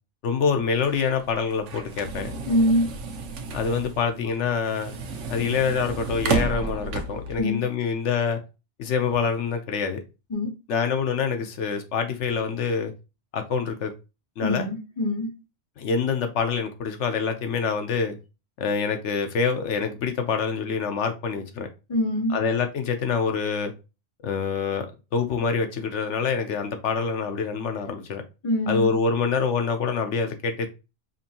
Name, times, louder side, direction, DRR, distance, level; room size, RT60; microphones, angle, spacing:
voice 1, 0.2-2.3 3.5-4.9 5.3-8.4 8.8-10.0 10.7-12.9 13.3-13.9 14.4-14.7 15.8-18.2 18.6-21.7 22.3-23.7 24.2-24.9 25.1-28.2 28.7-30.7, left 5 dB, 80° left, 1.0 m, -26 dB
sound 1, 0.8-7.4, right 3 dB, 90° right, 1.1 m, -32 dB
voice 2, 2.5-2.9 7.4-7.6 10.3-10.5 14.4-15.3 21.9-22.4 28.4-28.9, left 1 dB, 30° left, 0.7 m, -24 dB
5.4 x 2.6 x 2.7 m
omnidirectional pair, 1.2 m